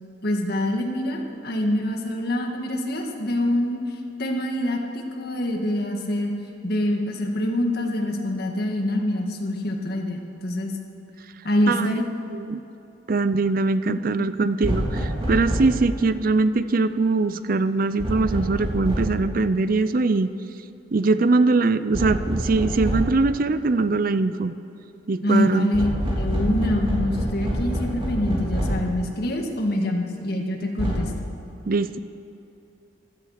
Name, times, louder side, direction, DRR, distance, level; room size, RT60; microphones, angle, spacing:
voice 1, 0.2-3.8 4.2-6.3 6.6-10.7 11.4-12.0 13.9-14.0 14.4-14.5 25.2-25.9 26.2-31.1, left 1 dB, 55° left, 2 dB, 1.9 m, -25 dB
voice 2, 11.7-12.0 12.3-12.6 13.1-20.3 20.9-24.5 25.1-25.8 31.7-32.0, right 3 dB, 50° right, 12 dB, 0.5 m, -22 dB
sound 1, 14.6-15.8 18.0-19.2 21.9-23.2 25.7-28.9 30.8-31.0, equal, 30° right, 3.7 m, -26 dB
15.5 x 12.5 x 6.6 m, 3.0 s
head